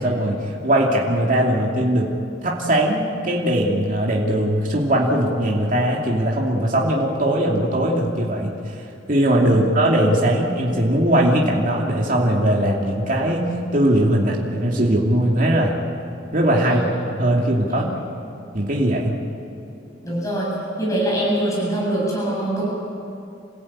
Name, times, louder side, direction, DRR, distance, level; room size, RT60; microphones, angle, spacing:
voice 1, 0.0-2.1 2.4-8.5 9.1-13.5 13.7-15.7 16.3-17.9 18.5-19.1, right 1 dB, 45° right, -2 dB, 2.7 m, -20 dB
voice 2, 20.0-20.5 20.8-22.7, right 1 dB, 15° left, -5 dB, 7.9 m, -23 dB
28.0 x 16.5 x 8.9 m, 2.8 s
head